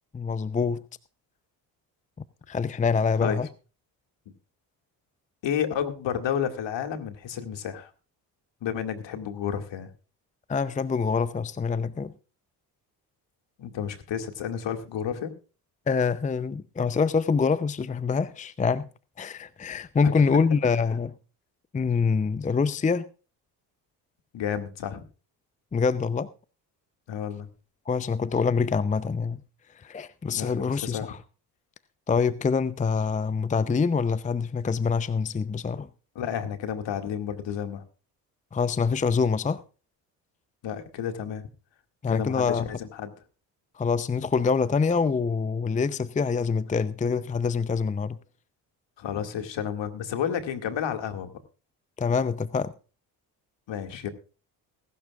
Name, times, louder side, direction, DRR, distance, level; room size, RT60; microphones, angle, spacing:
voice 1, 0.1-0.8 2.5-3.5 10.5-12.1 15.9-18.9 19.2-21.1 21.7-23.1 25.7-26.3 27.9-29.4 29.8-31.2 32.1-35.9 38.5-39.6 42.0-42.7 43.8-48.2 52.0-52.7, left 5 dB, 15° left, 0.6 m, -25 dB
voice 2, 5.4-7.9 8.6-9.9 13.6-15.3 20.0-20.2 24.3-25.0 27.1-27.5 30.3-31.1 36.2-37.8 40.6-41.4 42.1-43.1 49.0-51.3 53.7-54.1, left 8 dB, 60° left, 2.2 m, -31 dB
21.0 x 12.0 x 2.4 m
hypercardioid pair, 60°, 48 cm